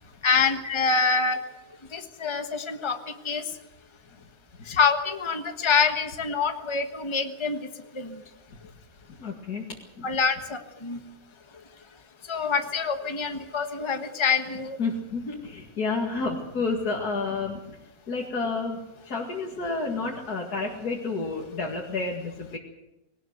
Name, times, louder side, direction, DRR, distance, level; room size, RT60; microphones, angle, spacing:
voice 1, 0.2-1.4 1.9-3.0 3.2-3.5 4.7-7.7 7.9-8.2 10.0-11.0 12.3-14.8, left 5 dB, 20° left, 6 dB, 1.3 m, -25 dB
voice 2, 9.2-9.6 10.0-10.1 14.8-17.8 18.1-18.8 19.1-22.6, left 3 dB, 85° left, -2 dB, 2.7 m, -30 dB
20.0 x 18.5 x 8.1 m, 0.92 s
omnidirectional pair, 1.6 m